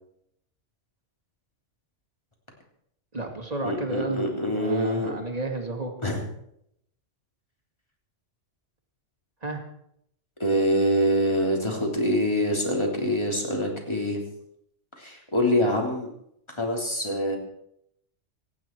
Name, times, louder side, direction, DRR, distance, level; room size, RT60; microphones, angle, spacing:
voice 1, 3.1-5.9 9.4-9.6, right 2 dB, 30° right, 3 dB, 2.4 m, -32 dB
voice 2, 3.6-5.1 6.0-6.3 10.4-14.2 15.0-16.1 16.6-17.4, equal, 25° left, 0 dB, 3.4 m, -25 dB
25.0 x 9.7 x 4.6 m, 0.74 s
omnidirectional pair, 1.2 m